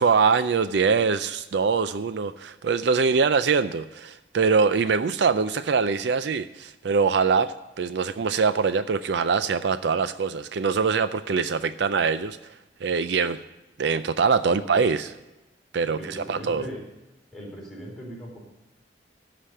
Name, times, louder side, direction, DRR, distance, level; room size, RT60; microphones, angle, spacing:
voice 1, 0.0-12.4 12.8-13.4 13.8-15.1 15.7-16.7, right 5 dB, 65° right, 12 dB, 0.4 m, -23 dB
voice 2, 14.5-14.9 15.9-16.8 17.3-18.4, equal, ahead, -6 dB, 4.2 m, -39 dB
13.0 x 5.1 x 8.2 m, 1.0 s
head